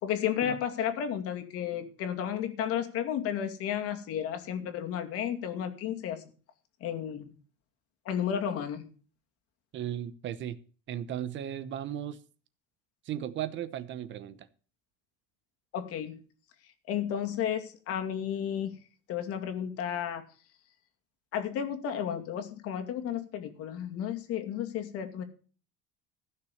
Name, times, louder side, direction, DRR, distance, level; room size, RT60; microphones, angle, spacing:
voice 1, 0.0-6.2 6.8-7.3 8.1-8.9 15.7-16.2 16.9-18.7 19.1-20.2 21.3-25.2, left 9 dB, 55° left, 6 dB, 2.3 m, -32 dB
voice 2, 9.7-10.6 10.9-12.2 13.0-14.5, right 10 dB, 40° right, 15 dB, 0.9 m, -36 dB
15.0 x 6.6 x 7.2 m, 0.38 s
cardioid pair, 160°, 29 cm